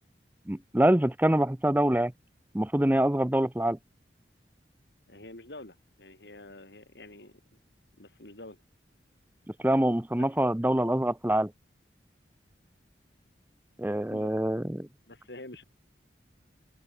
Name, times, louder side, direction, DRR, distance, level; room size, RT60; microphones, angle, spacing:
voice 1, 0.5-2.1 2.5-3.8 9.6-11.5 13.8-14.9, right 1 dB, 10° right, 0.6 m, -25 dB
voice 2, 5.1-7.3 8.0-8.6 10.1-10.3 14.1-14.3 15.1-15.6, left 1 dB, 70° left, 4.5 m, -47 dB
open air
head